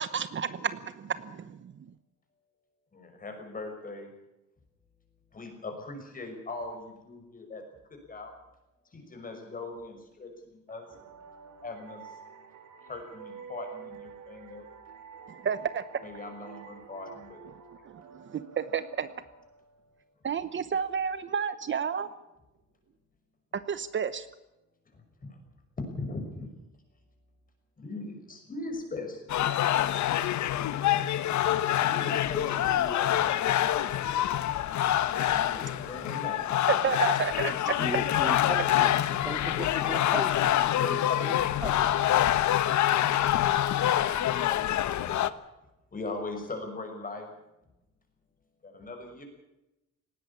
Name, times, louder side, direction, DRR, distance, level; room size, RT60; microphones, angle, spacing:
voice 1, 0.0-1.7 15.3-15.8 18.3-19.1 20.2-22.1 23.7-24.3 36.7-37.8, right 7 dB, 40° right, 14 dB, 1.0 m, -30 dB
voice 2, 2.9-4.1 5.3-7.6 7.9-8.3 8.9-10.8 11.6-12.1 12.8-14.6 16.0-17.4 24.9-25.0 25.8-26.5 27.8-29.3 31.8-33.5 35.3-36.6 40.5-41.5 44.0-44.7 45.0-45.2 45.9-47.3 48.6-49.2, left 2 dB, 30° left, 4 dB, 6.0 m, -40 dB
sound 1, 10.7-20.1, right 6 dB, 75° right, 2.7 m, -49 dB
sound 2, 29.3-45.3, left 12 dB, 75° left, 1.1 m, -26 dB
sound 3, 34.8-42.5, left 1 dB, 15° left, 3.3 m, -53 dB
voice 3, 37.7-40.5 40.8-41.8, right 2 dB, 5° right, 9 dB, 1.0 m, -38 dB
19.0 x 17.0 x 8.6 m, 0.93 s
cardioid pair, 150°, 29 cm